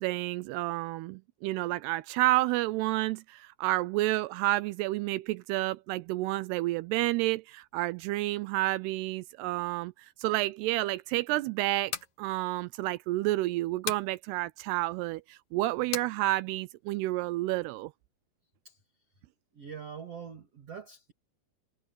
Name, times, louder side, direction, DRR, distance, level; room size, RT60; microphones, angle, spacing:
voice 1, 0.0-11.9 12.2-17.9, right 18 dB, 80° right, 2.5 m, -30 dB
sound 1, 11.7-12.2 13.9-14.1 15.9-16.1, left 8 dB, 55° left, 2.5 m, -35 dB
voice 2, 19.5-21.1, right 7 dB, 40° right, 2.9 m, -43 dB
omnidirectional pair, 5.0 m